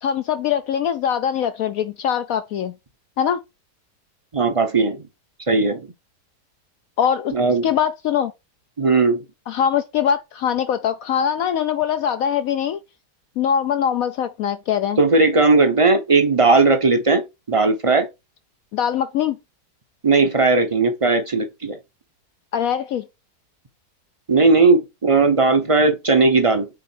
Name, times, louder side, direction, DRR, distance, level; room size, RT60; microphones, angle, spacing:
voice 1, 0.0-2.7 3.2-3.4 7.0-7.3 7.6-8.3 9.5-12.8 13.4-15.0 18.7-19.4 22.5-23.0, left 8 dB, 70° left, 0.9 m, -22 dB
voice 2, 4.3-5.0 5.5-5.8 7.3-7.7 8.8-9.2 15.0-17.2 17.5-18.1 20.0-21.8 24.3-26.7, right 3 dB, 30° right, 0.6 m, -17 dB
6.3 x 4.2 x 4.4 m
omnidirectional pair, 1.8 m